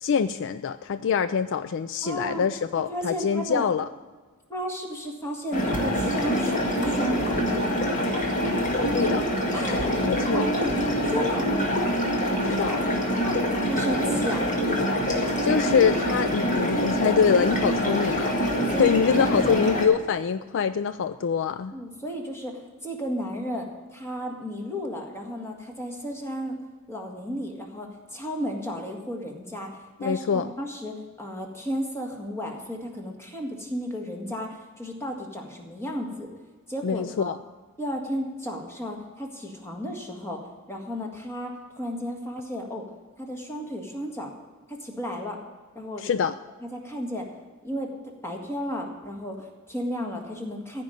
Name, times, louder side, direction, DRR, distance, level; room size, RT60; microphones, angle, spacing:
voice 1, 0.0-3.9 8.9-9.3 10.0-10.5 12.4-12.8 15.4-18.4 18.8-21.7 30.0-30.5 36.8-37.4 46.0-46.4, left 6 dB, 55° left, 12 dB, 0.4 m, -24 dB
voice 2, 2.0-2.5 2.9-3.6 4.5-8.1 9.5-10.0 10.3-10.7 11.0-11.5 12.5-12.8 13.2-14.4 18.7-18.9 19.4-19.7 21.7-26.6 26.9-29.7 30.0-30.2 30.6-36.3 36.7-37.3 37.8-40.4 40.7-42.8 43.2-44.3 44.7-45.4 45.8-46.0 46.6-47.3 47.6-47.9 48.2-50.8, equal, 10° left, 1 dB, 1.9 m, -33 dB
sound 1, 5.5-19.9, equal, 35° left, 2.0 m, -25 dB
14.5 x 5.3 x 8.9 m, 1.4 s
head